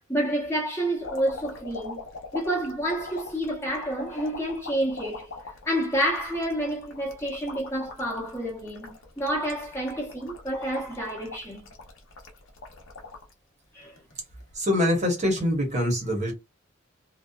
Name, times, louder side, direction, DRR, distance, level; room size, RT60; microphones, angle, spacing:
voice 1, 0.1-2.0 2.3-5.3 5.7-11.6 13.7-14.0, right 1 dB, 10° left, 0.7 m, -29 dB
sound 1, 1.0-13.3 13.8-14.6 15.5-15.7, left 3 dB, 70° left, 0.6 m, -42 dB
voice 2, 14.5-16.3, left 1 dB, 35° right, 0.8 m, -24 dB
2.6 x 2.2 x 2.2 m
head